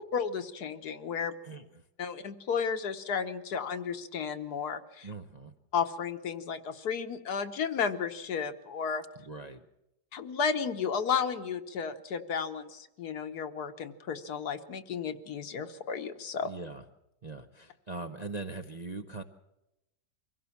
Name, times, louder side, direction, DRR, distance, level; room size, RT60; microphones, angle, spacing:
voice 1, 0.1-1.3 2.0-5.1 5.7-9.0 10.1-16.5, left 6 dB, 60° left, 9 dB, 1.5 m, -33 dB
voice 2, 1.4-1.8 5.0-5.5 9.2-9.6 16.4-16.8 17.2-19.2, right 3 dB, 35° right, 5 dB, 0.7 m, -41 dB
24.0 x 16.5 x 7.1 m, 0.91 s
omnidirectional pair, 1.9 m